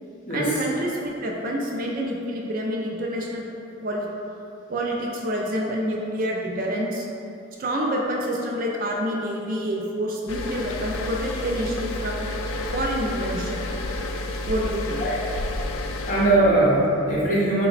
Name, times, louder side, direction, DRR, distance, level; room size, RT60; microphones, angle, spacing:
voice 1, 0.3-3.4 3.8-4.1 4.7-7.1 7.6-12.2 12.7-13.7 14.5-15.0, equal, 45° right, -1 dB, 0.4 m, -27 dB
sound 1, 10.3-16.4, left 2 dB, 85° left, 0.3 m, -30 dB
voice 2, 16.1-17.7, right 2 dB, 40° left, -7 dB, 0.8 m, -20 dB
3.9 x 2.2 x 3.9 m, 2.8 s
head